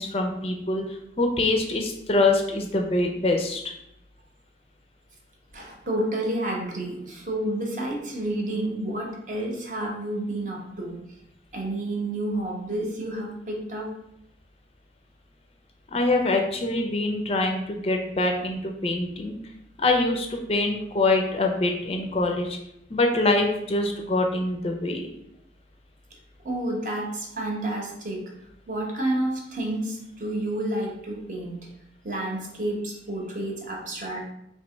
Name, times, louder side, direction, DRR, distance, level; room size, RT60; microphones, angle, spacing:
voice 1, 0.0-3.6 15.9-19.4 19.8-22.6 22.9-25.1, left 2 dB, 35° left, 3 dB, 0.4 m, -24 dB
voice 2, 5.5-11.0 11.5-13.9 26.4-28.2 28.7-31.7 32.0-34.3, right 1 dB, 45° right, -1 dB, 0.9 m, -30 dB
3.0 x 2.9 x 4.4 m, 0.80 s
head